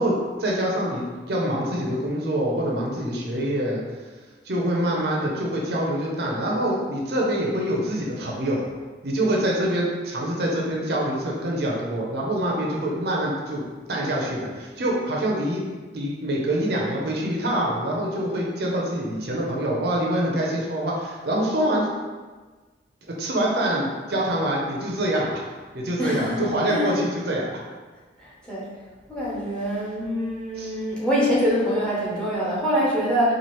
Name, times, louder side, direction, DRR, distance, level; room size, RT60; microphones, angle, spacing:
voice 1, 0.0-3.8 4.4-8.6 9.0-13.6 13.9-15.6 15.9-21.9 23.2-25.4 25.7-27.5 30.6-30.7, right 1 dB, 55° right, -3 dB, 0.6 m, -25 dB
voice 2, 26.0-27.0 28.2-28.7 29.1-33.3, equal, 5° left, -7 dB, 0.7 m, -25 dB
4.3 x 2.4 x 3.1 m, 1.3 s
head